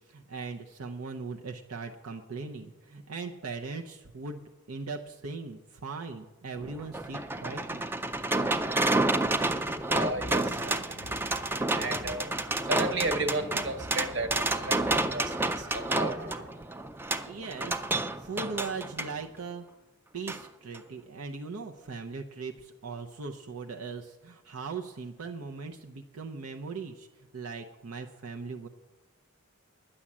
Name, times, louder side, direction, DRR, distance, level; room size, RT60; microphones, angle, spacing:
voice 1, 0.1-7.9 17.2-17.8 18.2-19.6 20.1-27.1 27.3-28.7, right 4 dB, 85° right, 3 dB, 0.7 m, -39 dB
sound 1, 6.6-19.1 20.3-20.4 20.7-20.8, right 2 dB, 10° right, 0.4 m, -30 dB
voice 2, 9.8-12.3 12.6-16.5, right 2 dB, 55° right, 8 dB, 1.3 m, -34 dB
10.0 x 9.8 x 7.3 m, 1.1 s
head